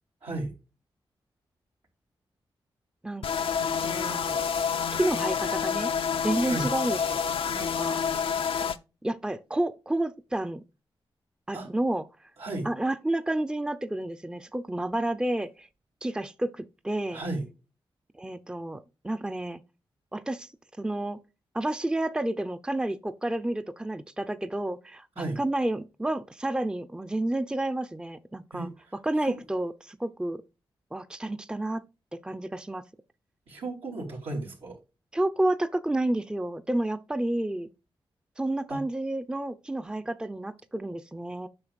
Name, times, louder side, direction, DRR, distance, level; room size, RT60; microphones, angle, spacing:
voice 1, 0.2-0.5 6.5-6.7 11.5-11.7 12.4-12.7 17.1-17.5 25.2-25.4 28.5-28.7 29.2-29.4 33.5-34.8 38.7-38.8, right 2 dB, 85° right, 2.8 m, -34 dB
sound 1, 3.2-8.8, left 6 dB, 70° left, 0.5 m, -28 dB
voice 2, 3.8-4.4 5.0-5.9 6.2-7.2 7.5-8.0 9.0-10.6 11.5-12.0 12.6-15.7 16.0-17.2 18.2-19.6 20.1-20.5 20.8-21.2 21.5-30.4 30.9-31.8 32.1-32.8 35.1-37.7 38.4-41.5, right 1 dB, 10° right, 0.6 m, -30 dB
8.6 x 5.6 x 2.4 m
cardioid pair, 50°, 10 cm